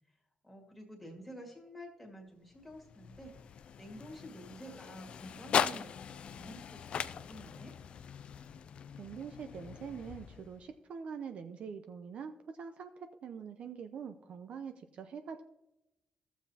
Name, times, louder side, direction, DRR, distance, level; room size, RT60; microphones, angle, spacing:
voice 1, 0.4-7.7, equal, ahead, 1 dB, 2.0 m, -50 dB
sound 1, 2.5-10.8, left 8 dB, 50° left, 0.4 m, -39 dB
voice 2, 8.9-15.4, right 6 dB, 55° right, 8 dB, 0.5 m, -44 dB
15.0 x 7.2 x 2.8 m, 0.91 s
wide cardioid pair, 170°, 2 cm